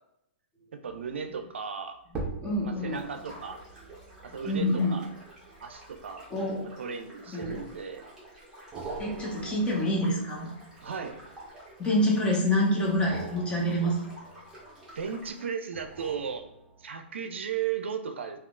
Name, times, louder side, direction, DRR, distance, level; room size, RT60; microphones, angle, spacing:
voice 1, 0.7-2.0 2.6-3.6 4.2-5.1 5.6-6.3 6.8-8.0 10.8-11.2 14.9-16.4 16.8-18.4, right 7 dB, 85° right, 7 dB, 0.4 m, -35 dB
sound 1, 0.8-1.2 2.0-6.7 7.4-8.0 8.7-11.7 12.9-15.0 15.7-17.1 17.6-17.7, right 3 dB, 20° right, 0.7 m, -44 dB
voice 2, 2.4-3.1 4.4-5.0 6.3-6.7 7.3-7.6 9.0-10.5 11.8-14.0, left 1 dB, 15° left, -3 dB, 0.9 m, -27 dB
sound 2, 2.9-15.5, right 1 dB, 5° right, 1.2 m, -50 dB
3.5 x 2.3 x 2.4 m, 0.80 s
hypercardioid pair, 130°, 6 cm